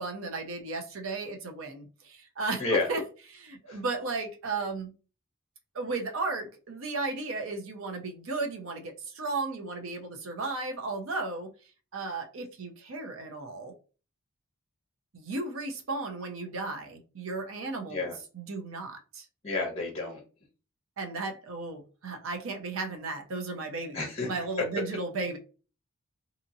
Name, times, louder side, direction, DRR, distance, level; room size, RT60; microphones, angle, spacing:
voice 1, 0.0-3.0 3.3-4.9 5.7-11.5 11.9-13.7 15.1-18.1 18.3-19.3 21.0-25.4, right 3 dB, 70° right, 0.6 m, -35 dB
voice 2, 2.6-2.9 3.7-3.8 17.9-18.2 19.4-20.2 23.9-24.3, left 3 dB, 30° left, 0.6 m, -30 dB
2.8 x 2.6 x 2.6 m
head